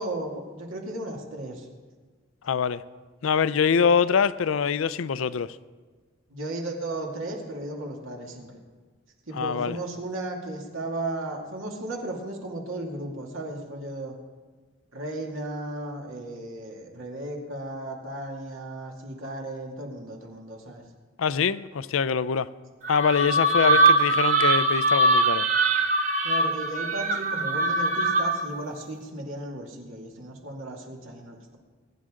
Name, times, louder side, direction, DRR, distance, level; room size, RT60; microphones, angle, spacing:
voice 1, 0.0-1.7 3.8-3.9 6.3-8.5 9.3-14.1 14.9-20.8 23.5-23.8 26.2-31.6, right 2 dB, 85° right, 2.4 m, -35 dB
voice 2, 2.4-2.8 3.2-5.6 9.3-9.8 21.2-22.5 22.9-25.5, left 6 dB, 80° left, 0.4 m, -24 dB
sound 1, 22.8-28.6, right 2 dB, 35° right, 1.1 m, -22 dB
21.5 x 10.5 x 3.8 m
head